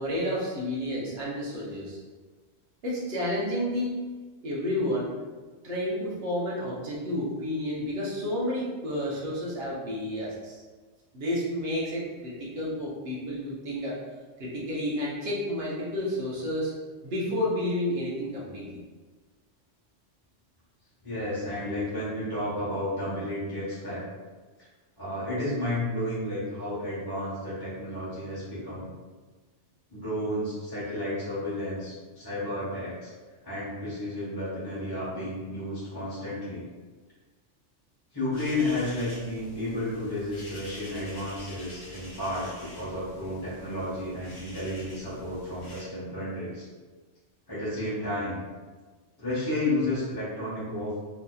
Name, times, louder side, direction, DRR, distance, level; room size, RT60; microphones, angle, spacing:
voice 1, 0.0-2.0 2.8-3.9 4.4-5.1 5.6-10.6 11.1-14.0 14.4-16.7 17.0-18.8, left 1 dB, 60° right, -6 dB, 1.2 m, -30 dB
voice 2, 21.0-24.0 25.0-28.9 29.9-33.1 33.4-36.7 38.1-46.6 47.5-48.4 49.2-51.0, left 1 dB, 20° left, -11 dB, 1.0 m, -32 dB
sound 1, 38.3-45.8, equal, 50° left, 1.0 m, -47 dB
4.1 x 2.8 x 2.3 m, 1.4 s
omnidirectional pair, 1.2 m